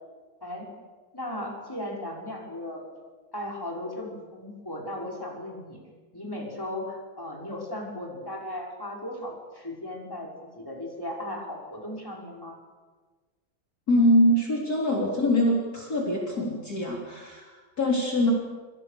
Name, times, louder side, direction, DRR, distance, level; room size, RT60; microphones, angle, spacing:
voice 1, 0.4-0.7 1.1-2.8 3.3-5.8 6.1-12.6, left 1 dB, 10° left, -1 dB, 6.0 m, -36 dB
voice 2, 13.9-18.3, left 1 dB, 45° left, -1 dB, 4.2 m, -24 dB
28.0 x 26.5 x 6.9 m, 1.4 s
omnidirectional pair, 2.2 m